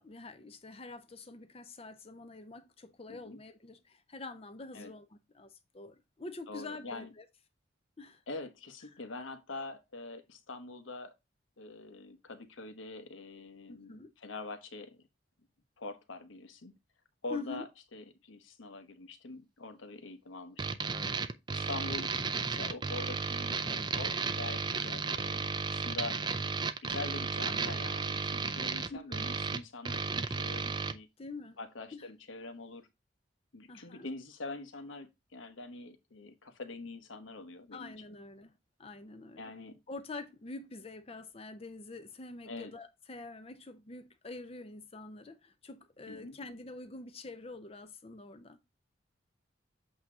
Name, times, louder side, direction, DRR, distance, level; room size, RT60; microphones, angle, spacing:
voice 1, 0.0-7.3 8.0-8.2 8.9-9.0 13.7-14.1 17.3-17.6 28.9-29.3 31.2-31.6 31.9-32.1 33.7-34.1 37.7-38.5 38.8-39.5 39.9-48.6, left 3 dB, 30° left, 0.6 m, -46 dB
voice 2, 6.5-7.1 8.3-11.1 11.6-15.0 15.8-16.7 17.2-20.8 21.5-22.2 22.5-26.2 26.8-31.1 31.6-32.9 33.5-37.9 39.4-39.8 42.4-42.7 46.1-46.4, left 3 dB, 90° left, 1.0 m, -44 dB
sound 1, 20.6-30.9, right 4 dB, 25° right, 0.4 m, -34 dB
8.1 x 2.9 x 4.9 m
head